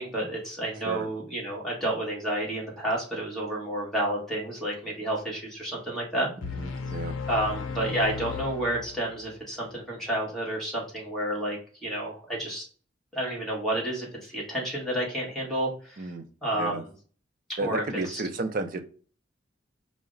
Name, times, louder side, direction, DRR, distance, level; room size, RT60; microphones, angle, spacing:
voice 1, 0.0-6.3 7.3-12.6 13.1-16.1 16.4-16.9 17.6-18.2, right 1 dB, ahead, -4 dB, 1.3 m, -30 dB
sound 1, 6.4-9.4, left 5 dB, 90° left, 0.5 m, -35 dB
voice 2, 6.4-7.1 16.0-16.2 16.6-16.8 17.6-18.8, right 3 dB, 45° right, 8 dB, 0.5 m, -32 dB
4.7 x 2.1 x 3.7 m, 0.41 s
head